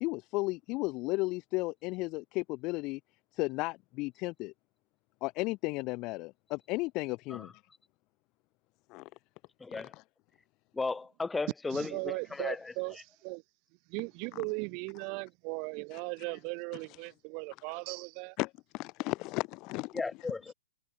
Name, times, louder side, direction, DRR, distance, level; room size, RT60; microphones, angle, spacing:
voice 1, 0.0-3.0 3.3-4.5 5.2-7.6 8.9-9.1 9.8-10.0 14.3-14.4 15.9-16.0 18.4-20.0, left 23 dB, 30° left, 0.8 m, -34 dB
voice 2, 9.6-9.9 10.7-12.7 19.9-20.5, left 3 dB, 5° left, 3.2 m, -35 dB
voice 3, 11.7-13.4 13.9-18.4, right 36 dB, 30° right, 1.5 m, -38 dB
hypercardioid pair, 150°, 0 cm